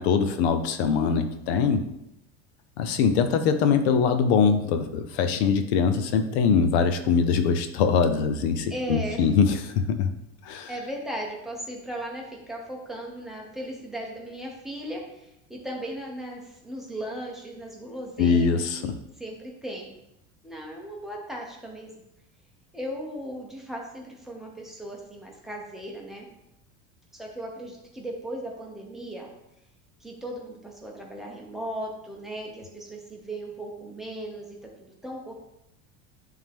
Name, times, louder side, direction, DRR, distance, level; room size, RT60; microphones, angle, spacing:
voice 1, 0.0-1.8 2.8-9.6 9.9-10.1 10.4-10.7 18.2-18.9, left 6 dB, 85° left, 8 dB, 0.9 m, -22 dB
voice 2, 5.6-5.9 8.7-9.3 10.7-18.9 19.2-20.0 20.4-21.9 22.7-26.3 27.1-29.3 30.0-35.3, right 1 dB, ahead, -2 dB, 1.0 m, -37 dB
10.0 x 3.8 x 3.6 m, 0.84 s
cardioid pair, 165°, 32 cm